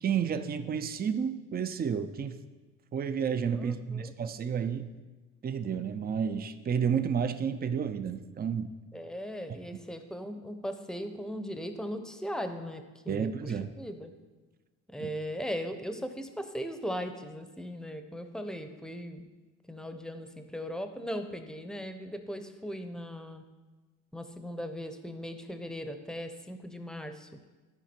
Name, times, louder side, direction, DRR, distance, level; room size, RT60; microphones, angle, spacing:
voice 1, 0.0-2.4 2.9-4.9 5.4-8.7 13.1-13.7 15.0-15.1, right 7 dB, 30° right, 10 dB, 0.5 m, -31 dB
voice 2, 3.5-4.1 8.9-14.1 14.9-19.3 19.7-23.4 24.1-27.3, equal, ahead, 8 dB, 0.7 m, -38 dB
12.5 x 4.9 x 4.4 m, 1.3 s
cardioid pair, 90°, 30 cm